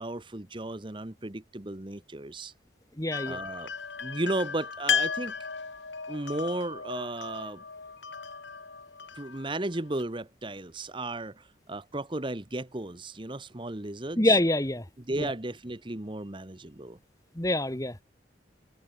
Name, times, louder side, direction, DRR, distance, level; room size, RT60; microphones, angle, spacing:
voice 1, 0.0-2.5 3.3-3.7 4.0-5.3 6.1-7.6 9.1-14.4 15.1-17.0, right 2 dB, 25° right, 1.1 m, -34 dB
voice 2, 3.0-3.4 14.2-14.8 15.2-15.3 17.4-18.0, left 1 dB, 20° left, 1.8 m, -25 dB
sound 1, 3.1-10.0, left 7 dB, 75° left, 3.1 m, -35 dB
head